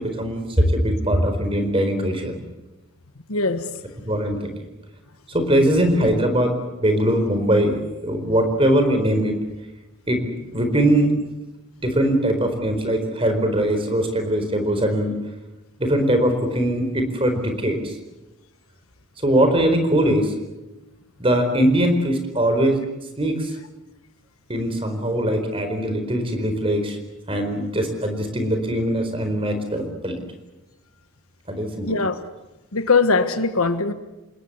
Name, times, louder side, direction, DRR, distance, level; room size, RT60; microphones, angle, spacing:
voice 1, 0.0-2.4 4.0-4.5 5.3-9.4 10.1-10.2 10.5-11.1 11.8-15.1 15.8-17.9 19.2-20.3 21.2-22.8 23.2-23.5 24.5-27.0 27.3-30.2 31.5-32.0, right 1 dB, 25° right, 4.5 m, -21 dB
voice 2, 3.3-3.7 31.8-32.2 32.7-33.9, left 4 dB, 90° left, 1.4 m, -20 dB
27.5 x 21.0 x 8.1 m
head